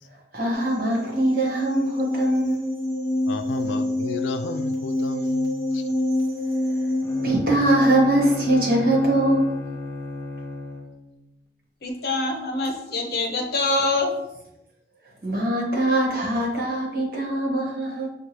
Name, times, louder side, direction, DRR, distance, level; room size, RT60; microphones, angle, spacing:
voice 1, 0.3-2.7 7.2-9.4 15.2-18.1, right 1 dB, 55° right, 1.3 m, -22 dB
sound 1, 0.5-7.3, left 1 dB, 25° right, 0.7 m, -26 dB
voice 2, 3.3-5.8, left 4 dB, 85° left, 0.3 m, -33 dB
Bowed string instrument, 7.0-11.1, left 2 dB, 15° left, 0.4 m, -34 dB
voice 3, 11.8-14.1, left 2 dB, 60° left, 0.7 m, -25 dB
6.5 x 2.3 x 3.0 m
head